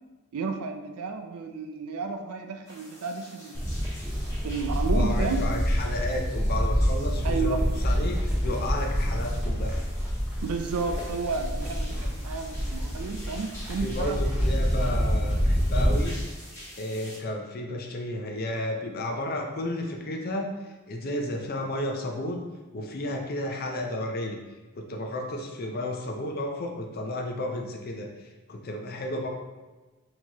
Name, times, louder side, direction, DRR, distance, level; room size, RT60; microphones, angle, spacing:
voice 1, 0.3-3.6 4.4-5.5 7.2-7.6 10.4-14.2, right 4 dB, 80° right, 6 dB, 0.4 m, -32 dB
sound 1, 2.7-17.2, equal, 15° left, 1.3 m, -48 dB
Livestock farm animals working animals, 3.5-16.0, equal, 10° right, 0.6 m, -27 dB
voice 2, 4.9-9.7 13.8-16.2 16.8-20.5 20.9-22.4 22.7-24.4 24.7-28.1 28.5-29.3, left 1 dB, 45° left, 2 dB, 0.5 m, -32 dB
4.5 x 2.9 x 2.9 m, 1.2 s
head